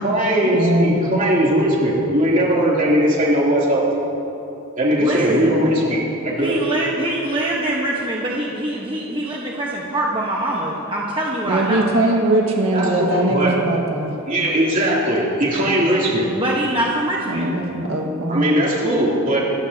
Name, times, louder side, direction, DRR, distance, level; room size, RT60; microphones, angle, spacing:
voice 1, 0.0-4.0 4.8-6.5 12.7-13.5 14.3-16.3 18.3-19.4, right 1 dB, 40° right, -5 dB, 3.2 m, -19 dB
voice 2, 0.5-1.0 11.4-14.1 17.3-18.4, right 1 dB, 75° right, -1 dB, 1.8 m, -20 dB
voice 3, 5.0-5.5 6.4-11.9 16.3-17.5, right 1 dB, 25° right, -3 dB, 1.2 m, -23 dB
26.5 x 14.0 x 2.9 m, 2.9 s
head